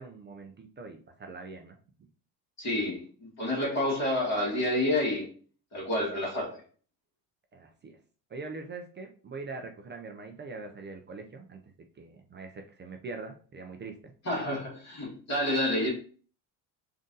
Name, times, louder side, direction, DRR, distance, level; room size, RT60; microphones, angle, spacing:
voice 1, 0.0-1.8 7.5-8.0 8.3-11.6 12.0-14.1, right 3 dB, 25° right, 4 dB, 0.4 m, -42 dB
voice 2, 2.6-3.1 3.4-5.3 5.7-6.6 14.2-15.9, left 1 dB, 35° left, -5 dB, 1.8 m, -29 dB
3.8 x 2.7 x 3.7 m, 0.41 s
cardioid pair, 135°, 43 cm